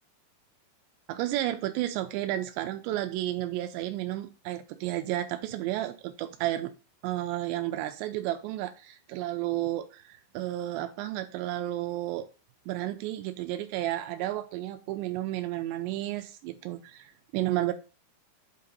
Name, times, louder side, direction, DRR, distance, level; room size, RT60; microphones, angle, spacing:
voice 1, 1.1-6.7 7.0-12.3 12.7-17.7, right 14 dB, 85° right, 9 dB, 2.5 m, -32 dB
8.4 x 2.8 x 5.1 m, 0.33 s
omnidirectional pair, 5.5 m